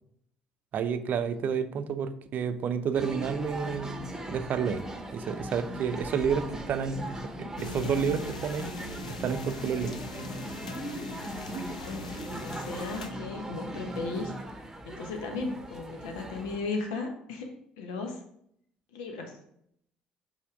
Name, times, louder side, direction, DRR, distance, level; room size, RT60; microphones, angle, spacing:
voice 1, 0.7-4.0 4.3-4.8 5.1-8.7 9.2-10.0 11.5-11.7, right 7 dB, 50° right, 11 dB, 0.6 m, -30 dB
sound 1, 2.9-16.6, right 1 dB, 15° right, 1.1 m, -39 dB
sound 2, 7.6-13.1, left 3 dB, 90° left, 0.4 m, -41 dB
voice 2, 11.8-14.3 14.9-18.2 18.9-19.4, left 3 dB, 75° left, 3 dB, 1.1 m, -36 dB
5.7 x 4.2 x 4.8 m, 0.70 s
hypercardioid pair, 55°, 4 cm